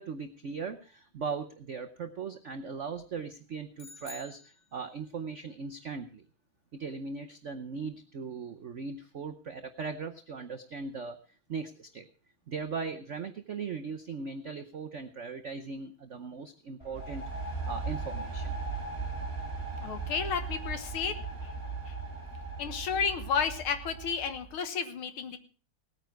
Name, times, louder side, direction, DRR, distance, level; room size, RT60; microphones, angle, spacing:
voice 1, 0.0-6.2 6.7-12.1 12.5-18.5, right 5 dB, 70° right, 7 dB, 0.6 m, -39 dB
sound 1, 3.8-5.2, left 3 dB, 55° left, 2.2 m, -50 dB
sound 2, 16.8-24.6, right 3 dB, 15° left, 2.4 m, -38 dB
voice 2, 19.8-21.2 22.6-25.4, left 6 dB, 80° left, 9 dB, 2.1 m, -32 dB
18.5 x 9.3 x 4.6 m, 0.38 s
omnidirectional pair, 2.3 m